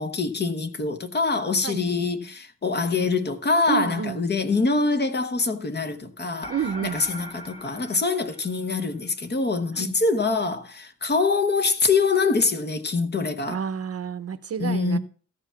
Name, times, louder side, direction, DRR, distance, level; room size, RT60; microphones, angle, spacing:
voice 1, 0.0-6.5 6.8-13.6 14.6-15.0, left 4 dB, 35° left, 1.0 m, -24 dB
voice 2, 3.7-4.2 6.5-7.0 9.8-9.9 13.5-15.0, right 7 dB, 50° right, 0.7 m, -29 dB
sound 1, 6.4-9.1, right 1 dB, 20° left, 2.0 m, -40 dB
14.0 x 4.9 x 6.9 m
wide cardioid pair, 175°, 31 cm